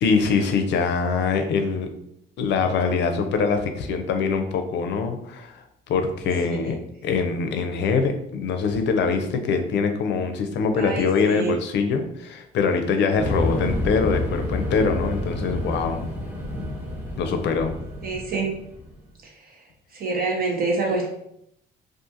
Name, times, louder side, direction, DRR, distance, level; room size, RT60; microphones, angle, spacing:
voice 1, 0.0-1.9 2.4-6.8 7.0-16.1 17.2-17.7, left 5 dB, 65° left, 6 dB, 0.4 m, -23 dB
voice 2, 10.8-11.5 18.0-18.5 19.2-19.6 19.9-21.1, right 3 dB, 50° right, 0 dB, 0.8 m, -27 dB
sound 1, 13.2-19.0, left 1 dB, 15° right, 1.0 m, -29 dB
2.5 x 2.4 x 2.6 m, 0.75 s
supercardioid pair, 75°, 19 cm